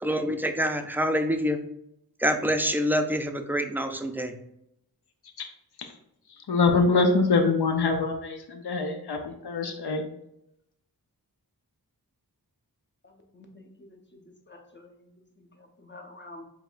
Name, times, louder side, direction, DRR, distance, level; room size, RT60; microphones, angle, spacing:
voice 1, 0.0-1.6 2.2-4.3, equal, 5° right, 6 dB, 0.4 m, -26 dB
voice 2, 6.5-10.0, left 3 dB, 80° left, 5 dB, 0.6 m, -24 dB
voice 3, 13.3-14.2 14.5-14.9 15.8-16.4, left 2 dB, 30° left, 3 dB, 0.8 m, -47 dB
4.7 x 3.4 x 2.4 m, 0.79 s
wide cardioid pair, 50°, 38 cm